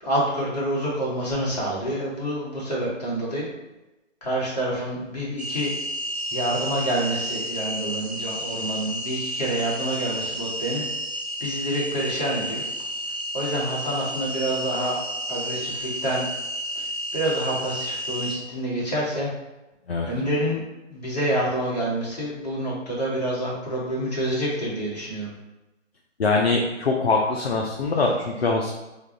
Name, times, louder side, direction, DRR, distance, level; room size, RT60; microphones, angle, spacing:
voice 1, 0.0-3.5 4.2-5.7 6.3-10.8 11.4-12.6 13.3-15.0 15.3-16.2 16.8-16.9 17.1-19.3 20.0-20.6 20.9-25.3, right 1 dB, 35° left, -6 dB, 1.1 m, -27 dB
sound 1, 5.4-18.4, equal, 55° right, 0.7 m, -31 dB
voice 2, 26.2-28.7, left 3 dB, 55° left, 0 dB, 0.5 m, -23 dB
3.4 x 2.2 x 3.7 m, 1.0 s
figure-of-eight pair, 165°, 38 cm